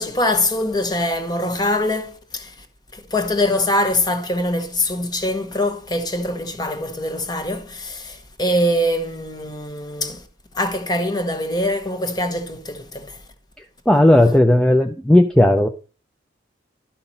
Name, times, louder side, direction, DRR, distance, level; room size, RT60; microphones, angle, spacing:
voice 1, 0.0-2.6 2.9-10.3 10.5-13.2 14.2-14.4, left 1 dB, 20° left, 1.0 m, -23 dB
voice 2, 13.9-15.7, left 1 dB, 5° left, 0.5 m, -14 dB
12.0 x 5.8 x 4.1 m
head